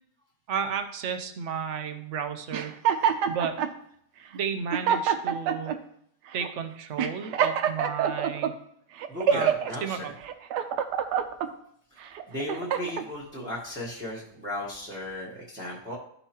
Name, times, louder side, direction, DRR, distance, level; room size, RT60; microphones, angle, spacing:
voice 1, 0.5-2.8 3.3-3.6 4.3-5.7 6.3-8.5 9.3-10.1, right 7 dB, 60° right, 7 dB, 0.8 m, -33 dB
sound 1, 2.5-3.7 4.4-4.5 4.7-5.8 6.3-6.5 7.0-8.5 9.0-9.7 10.2-11.5 12.1-13.1, right 8 dB, 85° right, 1.3 m, -26 dB
voice 2, 9.1-10.1 12.3-15.9, left 1 dB, 10° right, -5 dB, 1.0 m, -35 dB
12.5 x 5.5 x 2.9 m, 0.69 s
omnidirectional pair, 1.8 m